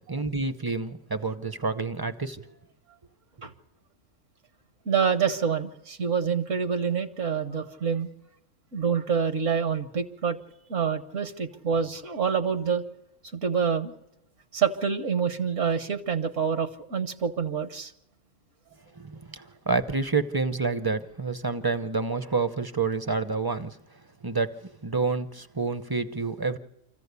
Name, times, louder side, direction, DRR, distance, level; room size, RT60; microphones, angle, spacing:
voice 1, 0.1-2.4 19.0-23.8 24.2-26.6, right 4 dB, 25° right, 10 dB, 0.6 m, -28 dB
voice 2, 4.8-8.1 8.7-10.4 10.7-12.8 13.3-13.9 14.5-17.9, right 6 dB, 65° right, 9 dB, 1.5 m, -27 dB
26.0 x 14.5 x 8.2 m, 0.90 s
omnidirectional pair, 1.4 m